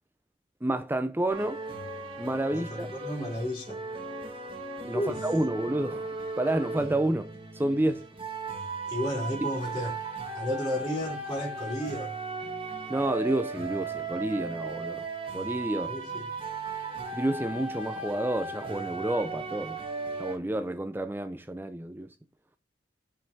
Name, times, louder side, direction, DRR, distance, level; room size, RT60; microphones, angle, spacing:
voice 1, 0.6-1.6 2.2-2.9 4.8-6.1 6.4-8.1 9.4-9.5 12.9-15.1 15.3-16.0 17.1-19.8 20.2-22.1, right 1 dB, 10° right, 0.5 m, -29 dB
sound 1, 1.3-20.4, right 3 dB, 30° right, 1.9 m, -37 dB
voice 2, 2.5-3.8 4.9-5.3 8.9-10.0 10.3-12.1 15.9-16.3, equal, 20° left, 3.6 m, -32 dB
7.3 x 5.3 x 4.5 m
head